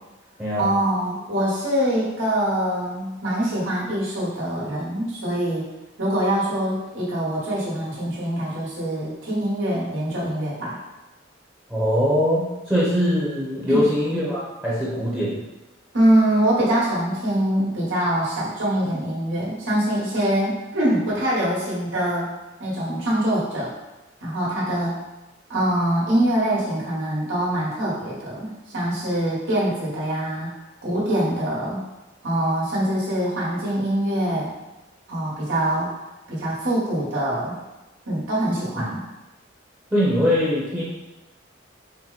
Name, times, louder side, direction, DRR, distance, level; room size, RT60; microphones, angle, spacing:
voice 1, 0.6-5.6 6.0-10.8 13.7-13.8 15.9-22.3 22.6-23.7 24.2-25.0 25.5-30.5 30.8-31.8 32.2-34.5 35.1-35.9 36.3-37.5 38.1-39.0, right 1 dB, 80° right, -6 dB, 1.4 m, -24 dB
voice 2, 11.7-15.4 38.7-38.8 39.9-40.8, equal, 10° right, -8 dB, 0.8 m, -22 dB
4.4 x 2.1 x 4.0 m, 1.0 s
head